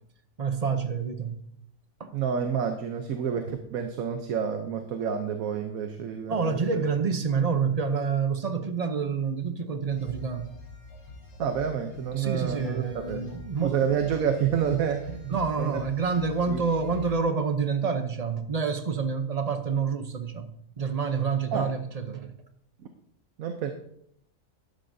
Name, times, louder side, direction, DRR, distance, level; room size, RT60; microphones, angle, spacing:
voice 1, 0.4-1.5 2.0-2.1 3.4-3.6 6.3-10.5 12.1-13.8 15.3-22.3, right 5 dB, 35° right, 0.7 m, -28 dB
voice 2, 2.1-6.8 11.4-13.2 13.6-15.8 16.5-16.6 21.5-21.7 23.4-23.7, right 7 dB, 90° right, 1.3 m, -29 dB
sound 1, 9.9-17.2, left 3 dB, 65° left, 2.6 m, -45 dB
12.5 x 10.5 x 2.7 m
omnidirectional pair, 1.4 m